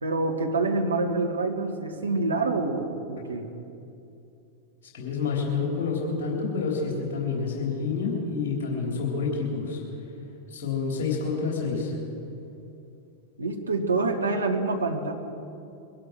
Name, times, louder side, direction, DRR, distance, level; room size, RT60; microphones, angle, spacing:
voice 1, 0.0-3.5 13.4-15.1, right 3 dB, 75° right, 4 dB, 1.5 m, -26 dB
voice 2, 4.9-9.8 10.5-12.0, left 4 dB, 50° left, -2 dB, 3.6 m, -28 dB
22.5 x 12.0 x 4.7 m, 2.7 s
figure-of-eight pair, 90°, 0 cm